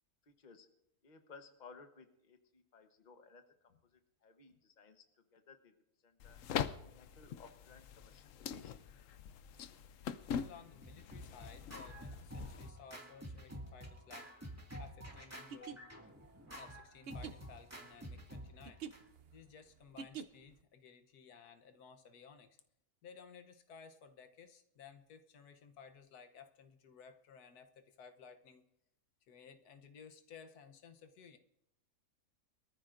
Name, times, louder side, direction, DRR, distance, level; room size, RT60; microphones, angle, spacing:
voice 1, 0.3-0.7 1.0-3.4 3.9-5.0 5.3-5.7 6.0-6.4 6.8-8.7, left 4 dB, 35° left, 7 dB, 1.1 m, -59 dB
sound 1, 6.2-12.7, left 8 dB, 65° left, 0.9 m, -43 dB
voice 2, 10.2-14.3 14.8-15.8 16.6-18.8 19.3-22.6 23.0-28.6 29.3-31.4, left 6 dB, 85° left, 8 dB, 1.5 m, -57 dB
Scratching (performance technique), 10.5-19.0, equal, 10° right, 2.0 m, -49 dB
sound 2, 15.5-20.6, right 7 dB, 55° right, 0.7 m, -48 dB
23.0 x 14.0 x 2.6 m, 0.81 s
omnidirectional pair, 1.6 m